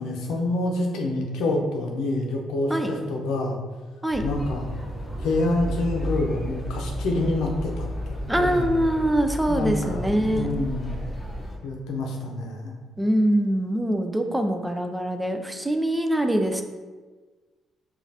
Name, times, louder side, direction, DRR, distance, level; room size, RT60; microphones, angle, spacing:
voice 1, 0.0-3.6 4.2-4.7 5.2-8.7 9.5-11.0 11.6-12.7, left 2 dB, 90° left, 1 dB, 0.6 m, -27 dB
sound 1, 4.1-11.6, equal, 20° left, 0.9 m, -32 dB
voice 2, 8.3-10.5 13.0-16.6, right 1 dB, 10° right, 5 dB, 0.4 m, -23 dB
5.1 x 2.4 x 2.7 m, 1.3 s
cardioid pair, 90°, 0 cm